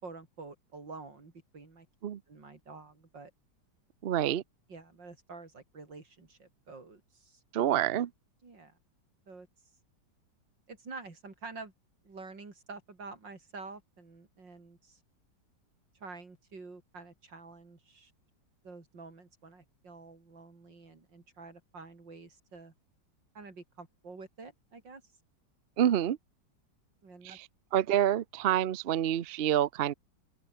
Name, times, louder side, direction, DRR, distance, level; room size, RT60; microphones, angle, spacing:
voice 1, 0.0-1.9 2.3-3.3 4.7-7.4 8.4-8.8 9.3-9.5 10.7-11.7 12.0-15.0 15.9-18.1 18.6-22.7 23.3-25.0 27.0-27.4, right 3 dB, 85° right, 4.9 m, -48 dB
voice 2, 4.0-4.4 7.5-8.1 25.8-26.2 27.2-27.4 27.7-29.9, right 11 dB, 60° right, 0.6 m, -27 dB
open air
omnidirectional pair, 1.9 m